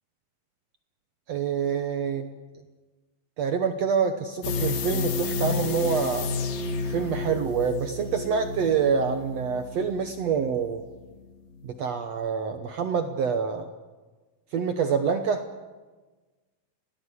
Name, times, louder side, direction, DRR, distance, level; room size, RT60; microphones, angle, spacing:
voice 1, 1.3-2.3 3.4-6.3 6.9-10.8 11.6-13.7 14.5-15.5, right 6 dB, 65° right, 7 dB, 1.7 m, -26 dB
sound 1, 4.4-11.2 11.5-11.6, left 4 dB, 70° left, 3.4 m, -31 dB
26.5 x 17.5 x 8.4 m, 1.3 s
omnidirectional pair, 4.2 m